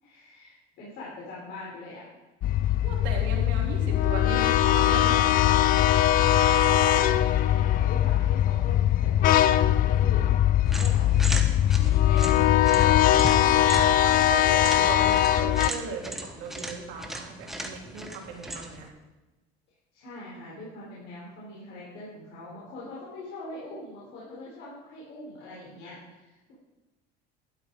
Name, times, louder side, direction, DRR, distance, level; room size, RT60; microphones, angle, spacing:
voice 1, 0.0-2.0 6.1-10.4 10.7-11.4 11.7-13.9 19.9-26.5, left 2 dB, 60° left, -6 dB, 4.4 m, -42 dB
sound 1, 2.4-15.7, left 11 dB, 45° left, 0.4 m, -21 dB
voice 2, 2.8-5.3 5.6-5.8 14.0-18.9, right 4 dB, 65° right, -1 dB, 3.5 m, -37 dB
sound 2, 10.7-18.9, right 1 dB, ahead, 1.2 m, -37 dB
12.5 x 10.5 x 4.8 m, 1.1 s
cardioid pair, 150°, 21 cm